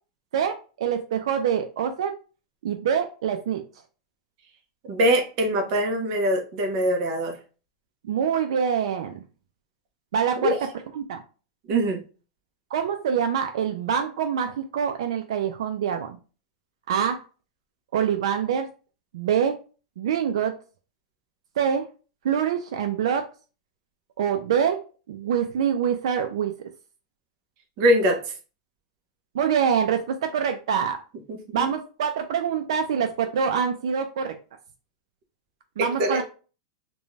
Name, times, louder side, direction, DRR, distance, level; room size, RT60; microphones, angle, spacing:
voice 1, 0.3-2.1 2.6-3.6 8.0-9.2 10.1-10.5 11.0-11.2 12.7-16.2 16.9-17.2 17.9-18.7 19.1-19.6 20.0-20.5 21.6-21.8 22.2-23.3 24.2-24.8 25.1-26.5 29.3-31.0 31.5-34.4 35.8-36.2, right 7 dB, 80° right, 6 dB, 0.4 m, -25 dB
voice 2, 4.8-7.4 10.4-10.7 11.7-12.0 27.8-28.3 31.5-31.7 35.8-36.2, right 1 dB, 40° right, 3 dB, 0.7 m, -23 dB
2.5 x 2.2 x 3.1 m, 0.35 s
supercardioid pair, 160°, 3 cm